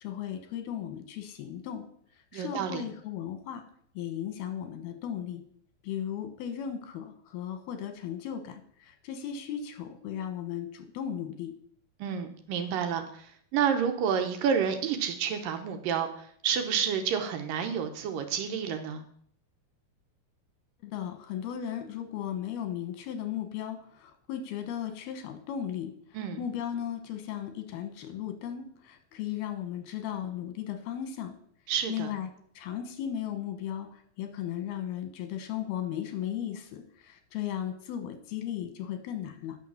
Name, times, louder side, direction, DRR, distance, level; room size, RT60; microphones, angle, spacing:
voice 1, 0.0-1.8 2.3-3.6 4.0-5.4 5.8-8.6 8.9-11.5 20.8-25.9 26.4-31.3 31.9-32.3 32.6-33.9 34.2-39.6, left 9 dB, 85° left, 8 dB, 3.1 m, -36 dB
voice 2, 2.3-2.8 12.0-19.0 26.1-26.5 31.7-32.1, right 7 dB, 75° right, 6 dB, 2.4 m, -30 dB
9.3 x 6.8 x 7.2 m, 0.63 s
omnidirectional pair, 4.4 m